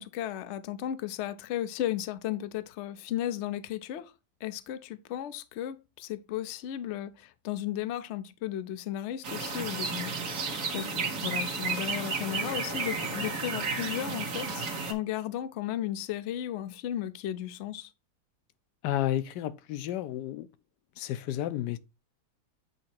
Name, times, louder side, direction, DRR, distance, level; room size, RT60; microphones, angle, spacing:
voice 1, 0.0-4.1 4.4-10.1 10.7-17.9, left 12 dB, 70° left, 0.7 m, -35 dB
sound 1, 9.2-14.9, right 4 dB, 55° right, 1.6 m, -32 dB
voice 2, 18.8-20.5 21.0-21.8, left 12 dB, 85° left, 1.2 m, -31 dB
8.4 x 2.9 x 4.4 m
omnidirectional pair, 1.8 m